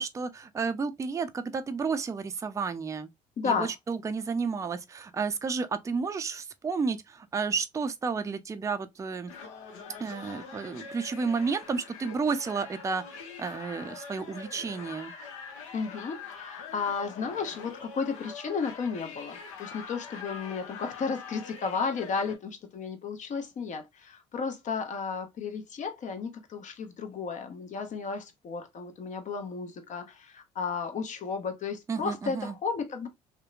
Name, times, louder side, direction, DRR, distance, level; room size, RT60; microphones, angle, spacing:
voice 1, 0.0-3.1 3.4-9.3 10.0-13.0 13.4-15.1 31.9-32.5, right 5 dB, 20° right, 0.4 m, -31 dB
voice 2, 3.4-3.7 15.7-33.1, left 5 dB, 45° left, 0.8 m, -33 dB
sound 1, 9.3-22.4, left 5 dB, 80° left, 0.7 m, -44 dB
2.7 x 2.1 x 2.4 m
hypercardioid pair, 65°, 17 cm